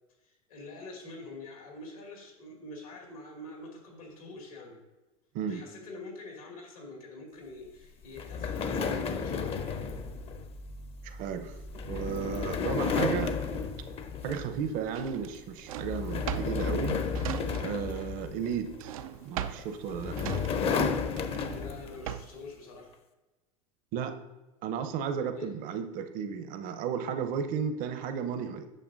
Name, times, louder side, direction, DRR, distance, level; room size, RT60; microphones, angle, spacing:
voice 1, 0.2-4.8 5.5-9.6 21.5-22.9 25.3-25.5, left 2 dB, 85° left, 0 dB, 2.3 m, -45 dB
sound 1, 8.2-14.7 15.1-15.4 15.8-18.8 19.6-22.0, left 5 dB, 30° left, 0.7 m, -33 dB
voice 2, 11.0-11.6 11.9-13.3 14.2-17.0 17.6-18.9 19.2-20.2 23.9-24.2 24.6-28.7, right 7 dB, 50° right, 8 dB, 0.8 m, -34 dB
Drawer open or close, 14.9-18.0 18.2-22.5, right 10 dB, 75° right, 0.5 m, -39 dB
8.7 x 6.8 x 2.6 m, 1.1 s
hypercardioid pair, 90°, 18 cm